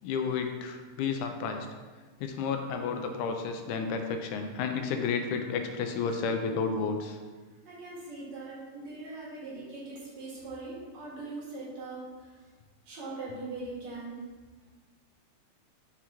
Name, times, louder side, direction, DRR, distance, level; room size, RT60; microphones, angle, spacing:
voice 1, 0.0-1.7 2.2-7.2, left 5 dB, 80° left, 5 dB, 2.0 m, -31 dB
voice 2, 7.7-12.4 12.9-14.2, right 3 dB, 65° right, -7 dB, 3.0 m, -41 dB
5.9 x 5.7 x 3.0 m, 1.4 s
omnidirectional pair, 3.6 m